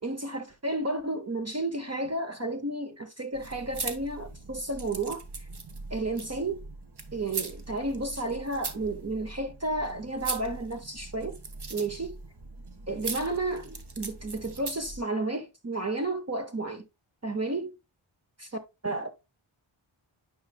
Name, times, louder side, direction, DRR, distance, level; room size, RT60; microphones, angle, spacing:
voice 1, 0.0-5.5 5.9-6.6 7.1-11.4 11.7-12.2 12.9-16.8 17.2-17.7 18.4-19.1, right 2 dB, 30° right, 0.8 m, -32 dB
sound 1, 3.3-15.0, right 3 dB, 50° right, 1.2 m, -40 dB
9.4 x 5.2 x 2.3 m
wide cardioid pair, 65°, 50 cm